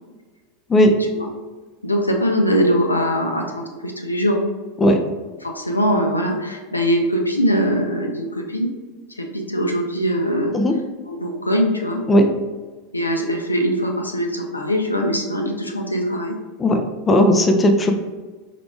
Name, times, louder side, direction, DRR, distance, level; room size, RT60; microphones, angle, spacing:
voice 1, 1.8-4.4 5.4-8.7 9.2-10.5 11.1-12.0 12.9-16.4, equal, 85° left, 2 dB, 0.5 m, -21 dB
voice 2, 16.6-17.9, equal, 20° left, 5 dB, 0.5 m, -16 dB
4.7 x 3.7 x 2.3 m, 1.3 s
figure-of-eight pair, 85°, 0 cm